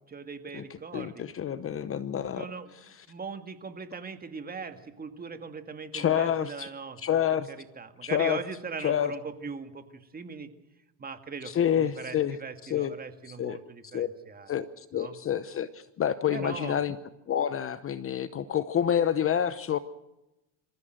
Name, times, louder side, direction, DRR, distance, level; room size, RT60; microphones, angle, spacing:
voice 1, 0.1-1.2 2.3-2.7 3.1-10.5 11.0-14.5 14.9-15.1 16.3-16.8, right 5 dB, 20° right, 9 dB, 1.9 m, -40 dB
voice 2, 0.9-2.5 5.9-6.7 7.0-7.5 8.0-8.4 8.8-9.1 11.5-12.4 12.6-12.9 13.4-13.6 13.9-14.1 14.5-17.0 17.3-19.8, left 9 dB, 30° left, 14 dB, 0.9 m, -28 dB
26.5 x 15.0 x 7.8 m, 0.96 s
supercardioid pair, 130°, 45 cm